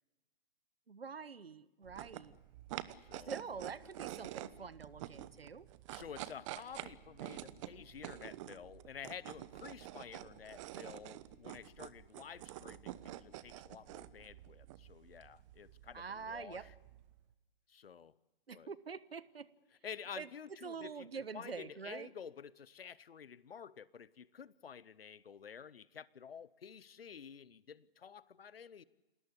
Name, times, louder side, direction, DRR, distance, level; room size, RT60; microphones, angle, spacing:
voice 1, 0.9-2.3 3.3-5.7 15.9-16.7 18.5-19.5 20.2-20.3 20.6-22.1, right 5 dB, 75° right, 18 dB, 1.4 m, -45 dB
sound 1, 1.8-17.2, right 14 dB, 30° right, 1.0 m, -48 dB
voice 2, 3.0-3.4 5.9-16.7 17.7-18.1 18.5-18.7 19.8-28.8, left 7 dB, 75° left, 21 dB, 0.9 m, -51 dB
27.5 x 18.0 x 9.8 m, 1.1 s
figure-of-eight pair, 125°, 30 cm